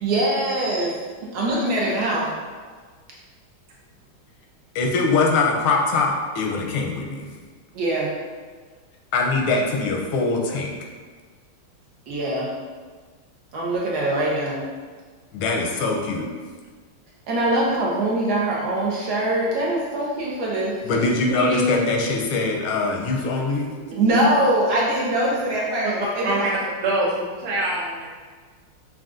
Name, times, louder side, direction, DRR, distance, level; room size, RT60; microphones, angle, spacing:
voice 1, 0.0-1.0 1.3-2.3 7.7-8.1 12.1-12.5 13.5-14.6 17.3-21.9 23.9-26.5, right 1 dB, 70° right, -4 dB, 0.9 m, -23 dB
voice 2, 4.7-7.3 9.1-10.7 15.3-16.3 20.8-23.7, left 3 dB, 85° left, 1 dB, 1.5 m, -22 dB
voice 3, 23.9-24.3 25.8-25.9 26.2-26.4 26.8-28.1, right 2 dB, 90° right, -6 dB, 1.5 m, -25 dB
6.0 x 2.3 x 2.4 m, 1.5 s
omnidirectional pair, 2.3 m